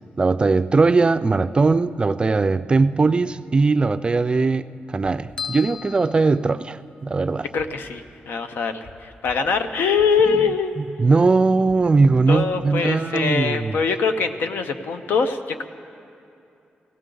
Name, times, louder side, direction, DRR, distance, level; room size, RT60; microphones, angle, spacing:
voice 1, 0.2-7.5 10.8-13.8, right 3 dB, 30° right, 12 dB, 0.3 m, -20 dB
sound 1, 5.0-5.1 5.6-5.7 7.5-7.9 8.8-8.9 9.2-9.3 10.0-10.2 11.7-11.8 12.1-12.4, equal, 65° left, 2.0 m, -45 dB
sound 2, 5.4-7.1, left 7 dB, 25° left, 0.5 m, -36 dB
voice 2, 7.5-10.7 12.3-15.7, left 5 dB, 85° left, 8 dB, 0.7 m, -23 dB
18.5 x 16.5 x 3.8 m, 2.6 s
wide cardioid pair, 115°, 3 cm